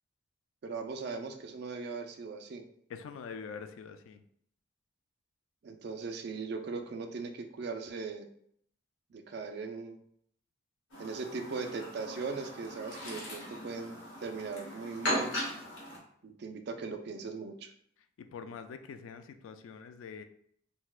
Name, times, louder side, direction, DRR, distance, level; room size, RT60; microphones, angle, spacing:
voice 1, 0.6-2.6 5.6-8.2 9.1-10.0 11.0-15.3 16.2-17.7, right 4 dB, 55° right, 5 dB, 0.3 m, -39 dB
voice 2, 2.9-4.2 18.2-20.2, left 6 dB, 85° left, 10 dB, 0.3 m, -44 dB
Chirp tweet, 10.9-16.0, equal, 70° left, 1.0 m, -38 dB
4.1 x 2.1 x 2.3 m, 0.67 s
head